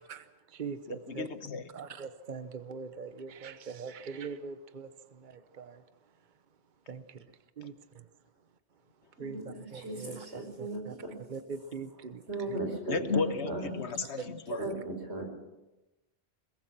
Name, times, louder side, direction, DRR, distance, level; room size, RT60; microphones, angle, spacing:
voice 1, 0.0-1.3 1.7-5.8 6.9-7.2 7.6-8.1 9.2-10.3 10.6-10.9 11.3-12.2 12.5-12.6 14.0-14.7, right 5 dB, 50° right, 11 dB, 1.1 m, -42 dB
voice 2, 0.9-1.6 12.9-14.6, left 4 dB, 85° left, 10 dB, 1.5 m, -33 dB
voice 3, 9.2-11.2 12.3-13.0 13.4-13.7 14.6-15.2, right 2 dB, 90° right, 3 dB, 5.0 m, -37 dB
22.0 x 21.5 x 6.1 m, 1.0 s
omnidirectional pair, 1.1 m